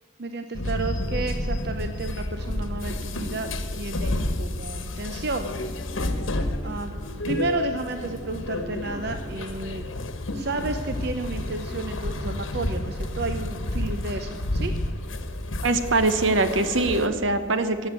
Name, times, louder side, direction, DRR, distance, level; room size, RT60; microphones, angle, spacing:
voice 1, 0.2-5.6 6.6-7.0 7.3-9.8 10.3-14.7, right 3 dB, 50° right, 7 dB, 0.7 m, -32 dB
sound 1, 0.5-17.1, left 1 dB, 70° left, 1.2 m, -30 dB
voice 2, 15.6-17.9, right 2 dB, 65° right, 10 dB, 1.0 m, -22 dB
16.0 x 8.0 x 8.2 m, 2.2 s
head